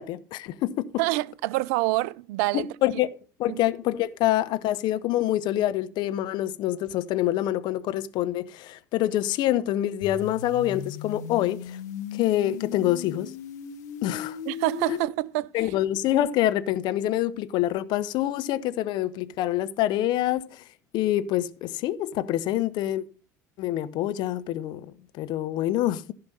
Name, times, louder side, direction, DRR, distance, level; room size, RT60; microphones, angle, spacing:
voice 1, 0.0-0.9 2.5-3.1 3.4-11.8 12.1-13.3 14.0-14.4 14.9-15.0 15.5-20.6 20.9-23.0 23.6-26.1, left 13 dB, 50° left, 0.8 m, -26 dB
voice 2, 1.0-2.7 3.5-3.6 14.5-15.7, right 19 dB, 55° right, 0.4 m, -27 dB
sound 1, 10.0-15.0, left 9 dB, 65° left, 1.2 m, -37 dB
15.0 x 5.8 x 5.3 m
figure-of-eight pair, 60°, 10 cm